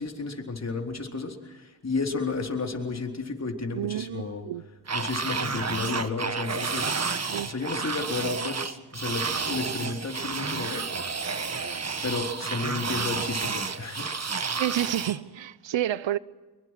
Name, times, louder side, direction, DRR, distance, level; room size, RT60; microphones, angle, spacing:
voice 1, 0.0-4.5 4.9-10.8 12.0-14.1, left 4 dB, 35° left, 4.1 m, -32 dB
voice 2, 3.7-4.6 7.3-7.5 14.6-16.2, right 12 dB, 65° right, 1.0 m, -29 dB
sound 1, 4.9-15.2, right 5 dB, 35° right, 1.7 m, -31 dB
24.5 x 23.0 x 6.2 m
supercardioid pair, 60°, 47 cm